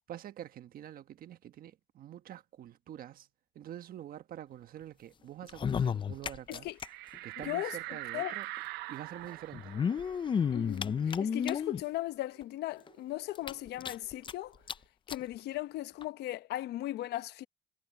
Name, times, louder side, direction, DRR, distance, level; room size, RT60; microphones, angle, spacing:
voice 1, 0.1-3.3 3.5-6.7 7.2-8.5 8.9-9.8, right 11 dB, 60° right, 1.4 m, -46 dB
sound 1, 5.4-6.9 7.1-7.2 7.4-7.5 8.6-8.7 9.5-11.8 12.4-12.5 12.9-13.0 13.4-14.3 14.7-14.8 15.1-15.2 16.0-16.1, left 7 dB, 30° left, 0.5 m, -32 dB
sound 2, 6.8-12.0 12.4-12.5 12.8-14.4, right 18 dB, 90° right, 0.7 m, -44 dB
voice 2, 7.4-8.4 10.5-14.6 15.1-17.5, left 15 dB, 75° left, 0.9 m, -37 dB
cardioid pair, 110°, 17 cm